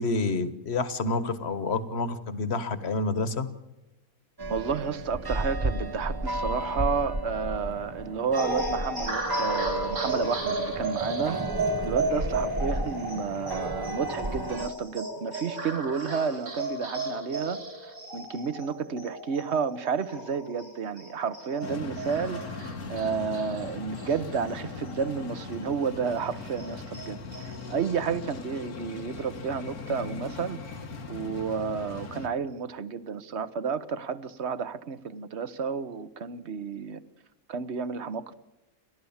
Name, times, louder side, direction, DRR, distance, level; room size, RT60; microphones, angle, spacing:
voice 1, 0.0-3.5, left 3 dB, 45° left, 12 dB, 1.6 m, -28 dB
sound 1, 4.4-14.7, right 2 dB, 25° right, 0.5 m, -33 dB
voice 2, 4.5-11.4 11.8-17.6 17.9-30.6 31.1-37.0 37.5-38.3, right 6 dB, 50° right, 14 dB, 1.2 m, -31 dB
sound 2, 8.4-25.3 25.6-25.7 26.1-27.7, right 2 dB, 70° right, 5.6 m, -34 dB
sound 3, 21.6-32.3, left 4 dB, 80° left, 2.2 m, -39 dB
29.5 x 13.0 x 7.2 m, 1.0 s
omnidirectional pair, 1.5 m